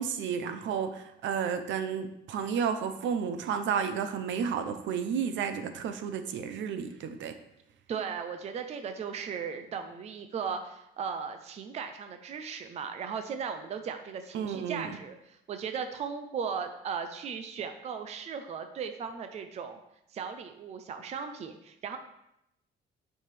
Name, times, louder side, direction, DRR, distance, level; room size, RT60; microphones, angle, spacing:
voice 1, 0.0-7.3 14.3-14.9, right 7 dB, 70° right, 8 dB, 0.7 m, -32 dB
voice 2, 7.9-19.8 20.1-22.0, right 6 dB, 35° right, 7 dB, 0.5 m, -37 dB
9.2 x 5.5 x 3.4 m, 0.82 s
cardioid pair, 170°, 20 cm